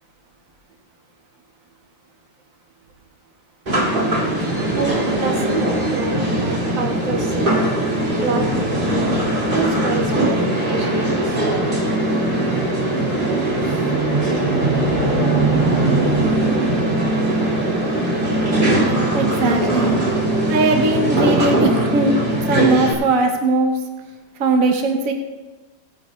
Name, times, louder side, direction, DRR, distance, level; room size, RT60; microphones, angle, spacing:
sound 1, 3.7-22.9, right 1 dB, 30° right, 1.9 m, -20 dB
voice 1, 4.7-7.6 7.9-8.5 9.5-11.4 14.2-14.4, right 4 dB, 80° right, 1 dB, 2.1 m, -27 dB
voice 2, 19.1-20.0 20.5-22.1 22.5-23.8 24.4-25.1, right 3 dB, 50° right, 4 dB, 1.3 m, -19 dB
17.5 x 8.6 x 3.1 m, 1.2 s
omnidirectional pair, 2.0 m